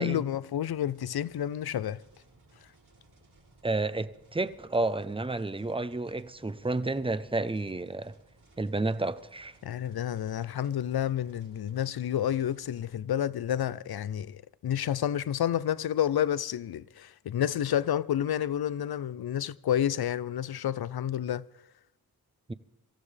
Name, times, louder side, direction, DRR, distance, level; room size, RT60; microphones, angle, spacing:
voice 1, 0.0-2.0 9.6-21.4, left 10 dB, 80° left, 0.5 m, -30 dB
sound 1, 0.6-13.0, right 2 dB, 90° right, 5.7 m, -61 dB
voice 2, 3.6-8.1 8.6-9.5 22.5-22.6, right 2 dB, 15° right, 0.6 m, -31 dB
24.5 x 14.0 x 3.3 m
wide cardioid pair, 60°, 37 cm